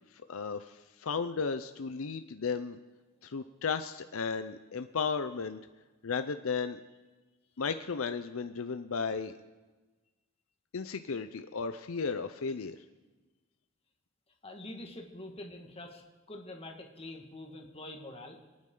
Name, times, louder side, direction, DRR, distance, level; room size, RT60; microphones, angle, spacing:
voice 1, 0.3-2.8 3.2-5.6 6.0-6.8 7.6-9.3 10.7-12.8, left 5 dB, 80° left, 9 dB, 0.6 m, -34 dB
voice 2, 14.4-16.0 16.3-18.4, left 1 dB, 30° left, 2 dB, 1.8 m, -45 dB
27.5 x 9.6 x 3.9 m, 1.2 s
head